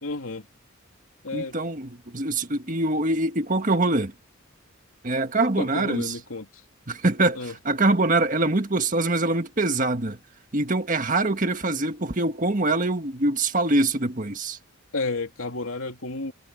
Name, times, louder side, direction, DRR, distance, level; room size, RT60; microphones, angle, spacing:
voice 1, 0.0-0.5 1.2-1.6 5.6-6.5 7.3-7.5 14.9-16.3, left 3 dB, 85° left, 3.0 m, -31 dB
voice 2, 1.3-4.1 5.0-6.1 6.9-10.2 10.5-14.6, right 2 dB, 40° right, 1.7 m, -24 dB
head